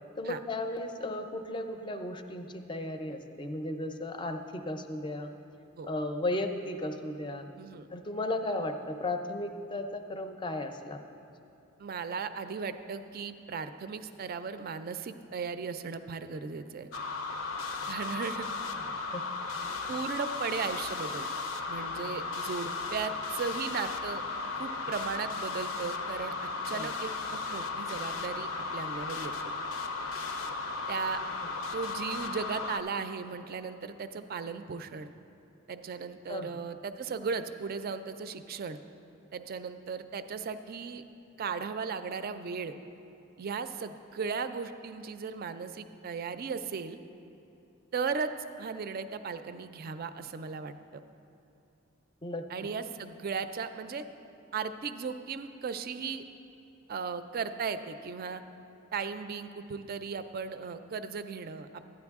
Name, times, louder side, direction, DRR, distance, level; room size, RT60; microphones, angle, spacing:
voice 1, 0.2-5.3 5.8-7.5 7.9-11.0 19.1-19.2 26.7-26.9 36.3-36.5 52.2-52.5, left 1 dB, 25° left, 6 dB, 0.5 m, -35 dB
voice 2, 7.6-7.9 11.8-16.9 17.9-18.5 19.9-21.3 21.7-24.2 24.6-26.4 26.7-29.5 30.9-31.2 31.7-35.1 35.7-38.8 39.3-41.0 41.4-42.7 43.4-47.0 47.9-48.3 48.6-50.7 52.5-54.0 54.5-56.2 56.9-58.4 58.9-61.9, right 5 dB, 50° right, 10 dB, 0.4 m, -36 dB
sound 1, 16.9-32.8, left 3 dB, 80° left, 0.6 m, -35 dB
12.0 x 9.8 x 3.5 m, 2.8 s
head